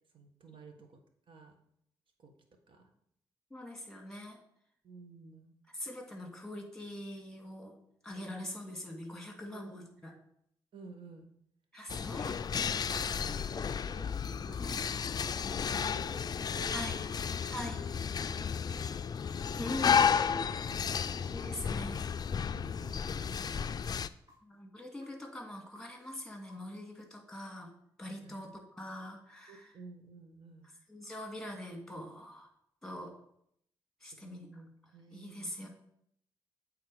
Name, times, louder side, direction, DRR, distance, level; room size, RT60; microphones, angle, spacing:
voice 1, 0.1-1.0 1.3-1.5 2.2-2.3 2.7-2.9 4.8-5.5 9.5-9.7 10.7-11.3 11.9-12.2 12.9-16.3 16.5-17.2 17.9-18.0 18.3-19.0 20.6-21.6 22.5-23.8 28.2-28.5 29.5-30.7 34.1-35.5, right 4 dB, 60° right, 5 dB, 1.4 m, -53 dB
voice 2, 3.5-4.4 5.7-7.7 8.0-10.1 11.7-12.4 14.6-14.8 16.7-16.9 17.5-17.9 19.5-20.4 21.3-22.1 24.4-27.7 28.0-29.7 30.9-32.5 32.8-33.1 34.0-34.5 35.1-35.7, left 1 dB, 5° left, 2 dB, 2.3 m, -43 dB
sound 1, 11.9-24.1, left 7 dB, 45° left, 0.4 m, -33 dB
sound 2, 21.1-22.2 22.6-27.0, equal, 35° right, 2.7 m, -63 dB
8.3 x 3.9 x 4.9 m, 0.73 s
supercardioid pair, 50°, 10 cm